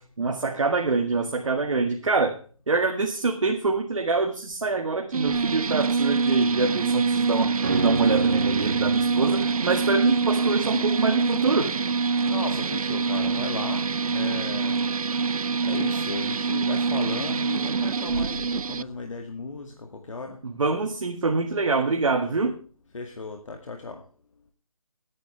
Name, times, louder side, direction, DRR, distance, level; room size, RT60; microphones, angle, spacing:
voice 1, 0.2-2.4 2.7-11.7 20.4-22.6, right 3 dB, 60° right, 3 dB, 1.8 m, -25 dB
sound 1, 5.1-18.8, right 5 dB, 85° right, 0.5 m, -25 dB
sound 2, 7.6-17.0 17.3-17.4, right 4 dB, 30° right, 1.0 m, -33 dB
voice 2, 12.2-14.8 15.6-20.4 22.9-24.0, left 3 dB, 60° left, 3 dB, 2.1 m, -35 dB
19.5 x 9.9 x 3.3 m, 0.41 s
figure-of-eight pair, 170°, 18 cm